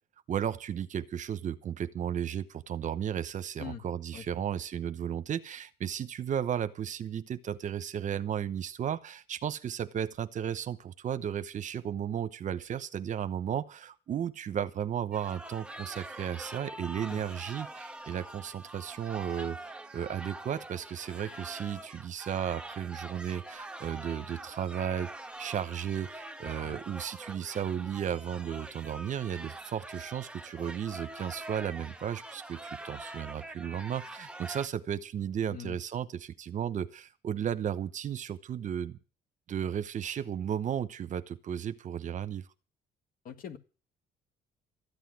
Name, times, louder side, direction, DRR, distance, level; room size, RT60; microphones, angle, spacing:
voice 1, 0.3-25.1 25.4-39.0 39.5-42.5, right 9 dB, 50° right, 1.0 m, -34 dB
sound 1, 15.1-34.7, right 2 dB, 5° right, 1.2 m, -44 dB
voice 2, 43.3-43.6, left 8 dB, 55° left, 1.9 m, -42 dB
13.5 x 8.3 x 9.3 m
cardioid pair, 110°, 17 cm